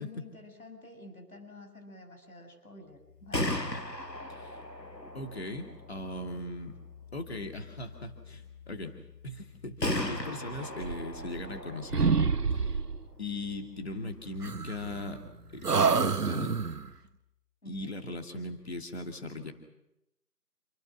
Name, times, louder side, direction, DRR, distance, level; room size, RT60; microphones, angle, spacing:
voice 1, 0.0-3.6 4.0-4.3 17.6-17.9, left 2 dB, 60° left, 6 dB, 7.0 m, -50 dB
Gunshot gunfire, 3.1-16.9, left 1 dB, 85° left, 5.7 m, -40 dB
voice 2, 5.1-6.7 7.1-9.0 9.2-12.2 12.5-12.8 13.2-15.2 15.5-16.6 17.7-19.5, left 2 dB, 40° left, 4 dB, 2.6 m, -39 dB
sound 1, 10.8-11.6 11.9-13.1 14.4-15.3 15.6-16.9, right 5 dB, 70° right, 1.0 m, -28 dB
29.0 x 23.0 x 6.4 m, 0.87 s
figure-of-eight pair, 165°, 49 cm